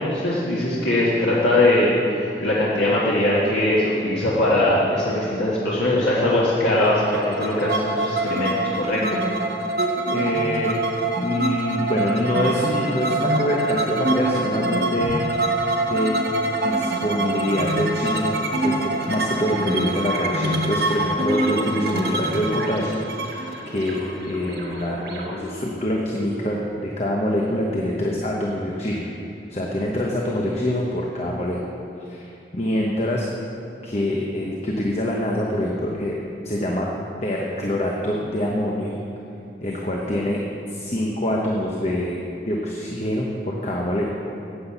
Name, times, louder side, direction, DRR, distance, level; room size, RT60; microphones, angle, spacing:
voice 1, 0.0-9.2, left 1 dB, 85° left, -7 dB, 1.7 m, -21 dB
sound 1, 6.8-24.5, right 2 dB, 60° right, 1.2 m, -25 dB
voice 2, 10.1-10.7 11.1-15.2 15.8-16.1 16.6-23.5 23.7-29.1 29.5-31.6 32.1-33.3 33.8-36.2 36.4-36.9 37.2-39.0 39.6-40.4 40.7-42.2 42.5-44.1, left 1 dB, 35° left, -2 dB, 1.0 m, -25 dB
sound 2, 19.4-26.7, right 1 dB, 80° right, 2.9 m, -36 dB
9.8 x 8.6 x 7.2 m, 2.7 s
head